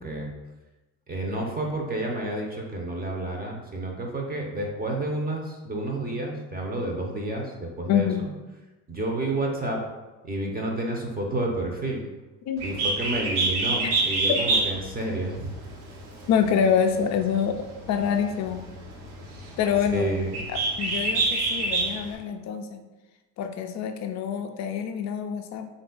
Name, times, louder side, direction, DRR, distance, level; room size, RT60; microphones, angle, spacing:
voice 1, 1.1-8.3 8.9-9.8 10.2-12.1 12.6-15.6 19.8-20.4, right 1 dB, 20° right, 1 dB, 0.7 m, -30 dB
voice 2, 7.9-8.3 12.5-12.6 13.8-13.9 14.3-14.4 16.3-18.6 19.6-20.2 20.5-22.8 23.4-25.7, left 7 dB, 35° left, 7 dB, 0.4 m, -26 dB
Bird, 12.6-22.2, right 3 dB, 65° right, 1.0 m, -28 dB
3.7 x 2.6 x 3.7 m, 1.1 s
figure-of-eight pair, 60°, 49 cm